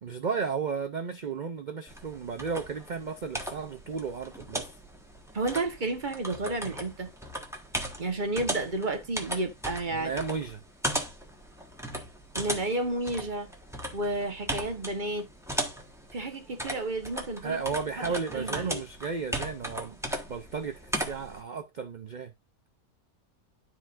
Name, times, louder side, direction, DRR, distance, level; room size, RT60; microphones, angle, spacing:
voice 1, 0.0-4.7 9.9-10.6 17.4-20.0 20.3-22.3, right 5 dB, 60° right, 0.4 m, -34 dB
sound 1, 1.9-21.4, right 1 dB, ahead, 1.2 m, -37 dB
voice 2, 5.3-7.1 8.0-10.1 12.3-13.5 13.9-15.3 16.1-17.6 18.0-18.1 18.3-18.8, right 2 dB, 35° right, 1.3 m, -31 dB
12.5 x 4.6 x 2.5 m
omnidirectional pair, 1.6 m